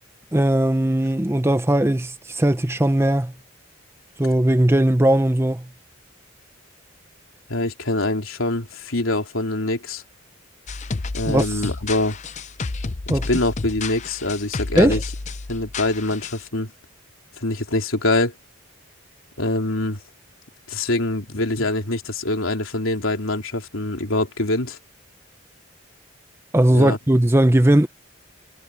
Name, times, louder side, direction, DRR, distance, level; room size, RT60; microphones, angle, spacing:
voice 1, 0.3-3.3 4.2-5.6 11.3-11.6 13.1-13.3 14.7-15.0 26.5-27.9, right 1 dB, 10° right, 0.6 m, -18 dB
voice 2, 7.5-10.0 11.1-12.2 13.1-15.0 15.5-16.7 17.4-18.3 19.4-20.0 20.7-24.8 26.7-27.0, left 2 dB, 75° left, 3.4 m, -24 dB
sound 1, 10.7-16.5, left 3 dB, 35° left, 0.6 m, -31 dB
head